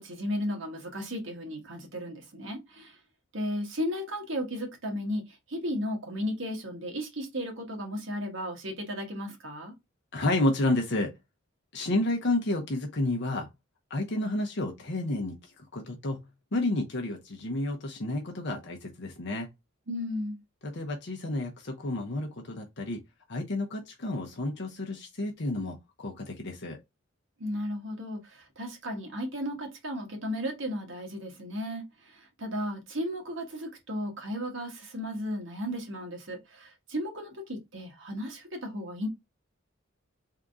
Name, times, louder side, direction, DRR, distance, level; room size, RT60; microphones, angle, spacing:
voice 1, 0.0-2.9 3.3-5.2 5.5-9.7 19.9-20.4 27.4-31.8 32.1-39.1, equal, 65° right, 1.5 m, -34 dB
voice 2, 10.1-11.2 11.7-13.5 13.9-16.3 16.5-19.5 20.6-23.0 23.3-26.8, left 2 dB, 55° left, 0.7 m, -30 dB
3.7 x 2.6 x 3.5 m
head